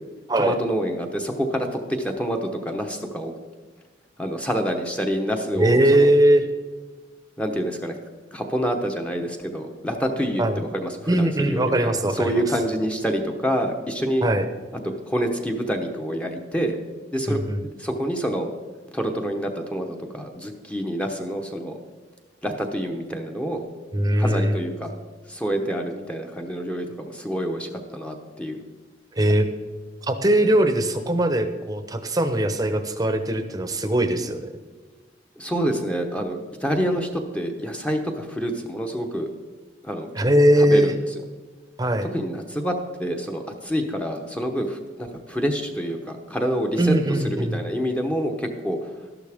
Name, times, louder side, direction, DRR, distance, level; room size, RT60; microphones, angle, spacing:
voice 1, 0.4-1.7 2.0-3.3 4.2-6.1 7.4-8.0 8.3-14.3 14.8-16.8 17.1-17.4 17.8-18.5 18.9-21.8 22.4-23.7 24.2-24.9 25.3-28.6 35.4-39.3 39.8-40.3 40.6-41.0 42.1-48.9, equal, 5° left, 3 dB, 0.9 m, -27 dB
voice 2, 5.5-6.4 10.4-10.6 11.1-12.4 14.2-14.5 17.3-17.6 23.9-24.6 29.2-29.5 30.0-34.5 40.2-40.9 41.8-42.1 46.8-47.6, right 1 dB, 20° right, 8 dB, 0.8 m, -20 dB
13.0 x 11.5 x 3.6 m, 1.4 s
head